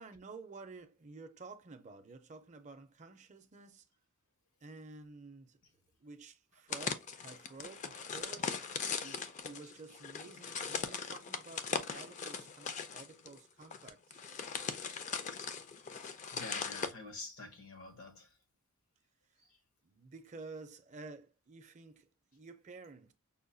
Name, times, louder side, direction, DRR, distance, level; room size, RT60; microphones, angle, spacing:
voice 1, 0.0-3.8 4.6-5.6 6.0-8.6 9.0-14.2 19.8-23.1, right 3 dB, 35° right, 0.5 m, -51 dB
sound 1, 6.7-16.9, left 5 dB, 35° left, 0.4 m, -40 dB
voice 2, 16.0-18.4 19.4-19.6, left 3 dB, 80° left, 0.9 m, -49 dB
5.5 x 2.2 x 2.5 m
head